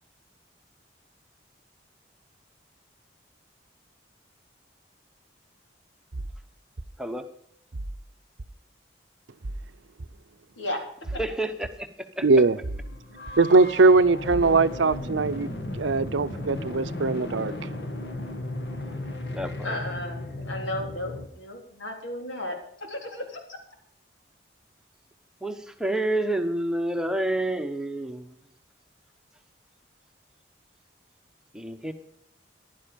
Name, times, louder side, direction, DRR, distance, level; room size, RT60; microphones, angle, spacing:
sound 1, 6.1-6.4 6.8-6.9 7.7-8.0 8.4-8.5 9.4-9.6 10.0-10.1 11.0-11.3 11.6-11.7 12.6-12.9 13.3-13.4 14.3-14.5 14.9-15.0, right 2 dB, 55° right, 0.8 m, -35 dB
voice 1, 7.0-7.3 11.1-11.9 12.2-12.3 19.3-19.8 25.4-28.4 31.5-31.9, right 1 dB, 5° right, 7 dB, 1.0 m, -29 dB
voice 2, 12.2-12.6 13.4-15.5 15.8-17.5, right 3 dB, 85° right, 14 dB, 0.6 m, -20 dB
sound 2, 12.4-21.3, left 1 dB, 70° left, 2.0 m, -35 dB
voice 3, 19.6-22.6 22.9-23.2, left 1 dB, 90° left, 2 dB, 3.7 m, -34 dB
15.0 x 11.5 x 5.2 m, 0.68 s
head